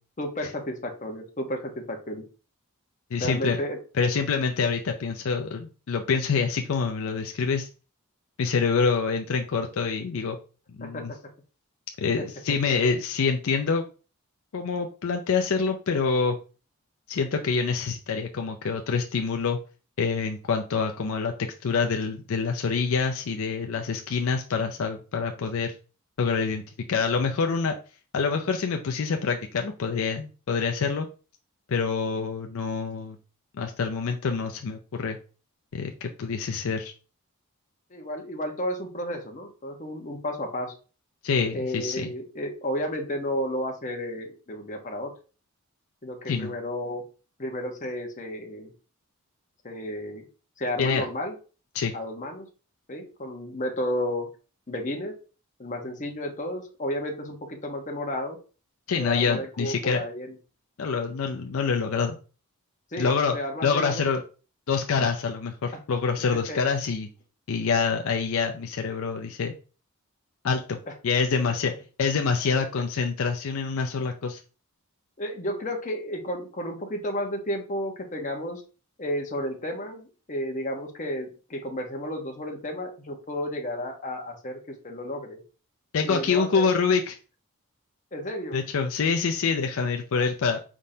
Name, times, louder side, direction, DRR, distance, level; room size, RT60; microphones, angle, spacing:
voice 1, 0.2-2.2 3.2-3.8 10.8-11.2 12.2-12.3 12.6-12.7 37.9-40.8 41.5-45.1 46.0-47.1 47.4-48.7 49.6-50.3 50.6-51.3 51.9-52.5 52.9-54.3 54.7-55.1 55.6-58.4 59.0-60.4 62.9-64.0 66.3-66.6 70.9-71.0 75.2-78.6 79.0-85.4 86.0-86.7 88.1-88.6, equal, 35° left, 2 dB, 0.9 m, -32 dB
voice 2, 3.1-3.6 4.0-7.7 8.4-10.4 10.8-11.1 12.0-13.8 14.5-16.4 17.1-19.6 20.0-21.3 21.6-25.7 26.2-26.6 26.9-27.7 28.1-31.1 31.7-33.2 33.6-35.2 35.7-36.9 41.2-42.1 46.3-46.5 50.8-51.1 51.7-51.9 58.9-60.0 60.8-62.2 63.0-63.4 63.6-64.2 64.7-67.1 67.5-69.5 70.4-71.7 72.0-74.4 85.9-87.2 88.5-90.6, left 5 dB, 65° left, 4 dB, 0.4 m, -26 dB
5.1 x 3.7 x 2.7 m, 0.35 s
head